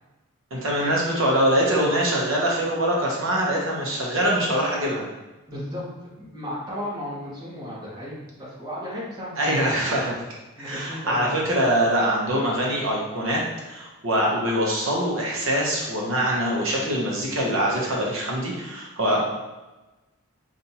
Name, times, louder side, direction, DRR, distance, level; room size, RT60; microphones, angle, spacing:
voice 1, 0.5-5.1 9.4-10.1 10.6-13.4 13.7-19.4, right 1 dB, 60° right, -3 dB, 0.8 m, -23 dB
voice 2, 5.5-5.8 6.2-10.0 10.6-11.4, left 1 dB, 15° right, -9 dB, 1.2 m, -35 dB
5.3 x 2.5 x 2.8 m, 1.1 s
head